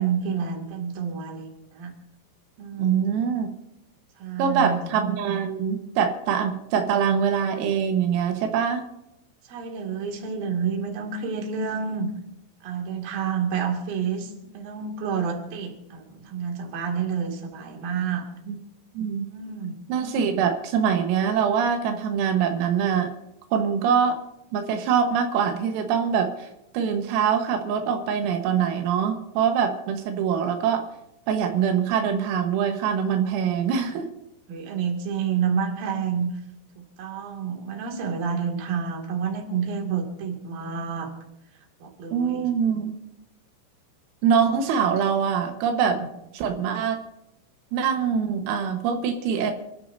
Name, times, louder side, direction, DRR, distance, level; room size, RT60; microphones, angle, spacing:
voice 1, 0.0-1.9 2.6-3.0 4.2-4.9 9.5-12.1 12.6-18.3 19.3-19.8 34.5-36.3 36.8-41.1 41.8-42.5 46.0-46.1, right 6 dB, 50° right, 1 dB, 3.5 m, -29 dB
voice 2, 2.8-3.5 4.4-8.8 18.5-18.6 19.0-19.3 19.9-23.1 23.5-24.2 24.5-26.5 26.7-30.9 31.3-34.1 42.1-43.0 44.2-46.0 46.3-47.0 47.7-49.5, right 7 dB, 85° right, 4 dB, 4.0 m, -24 dB
27.5 x 13.0 x 2.7 m, 0.87 s
omnidirectional pair, 5.9 m